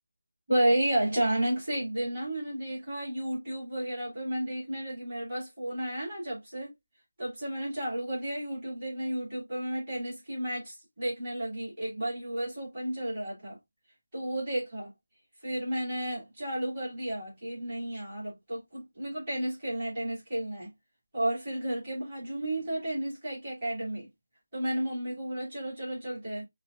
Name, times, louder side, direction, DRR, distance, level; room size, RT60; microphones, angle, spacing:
voice 1, 0.5-6.7 7.2-13.6 14.1-14.9 15.4-20.7 21.1-24.1 24.5-26.4, right 1 dB, 20° right, 3.0 m, -32 dB
5.3 x 2.2 x 2.6 m
figure-of-eight pair, 175°, 0 cm